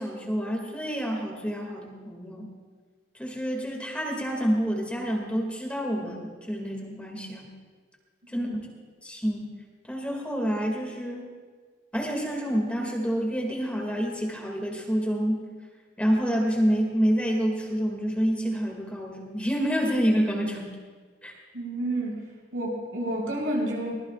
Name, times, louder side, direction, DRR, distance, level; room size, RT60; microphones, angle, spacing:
voice 1, 0.0-2.5 3.1-7.5 8.3-8.5 9.0-9.5 9.9-11.3 11.9-15.4 16.0-20.7 21.2-21.3, equal, 5° left, -1 dB, 2.3 m, -28 dB
voice 2, 21.5-22.2 22.5-23.9, right 1 dB, 80° right, -2 dB, 5.8 m, -30 dB
24.5 x 19.0 x 2.5 m, 1.5 s
head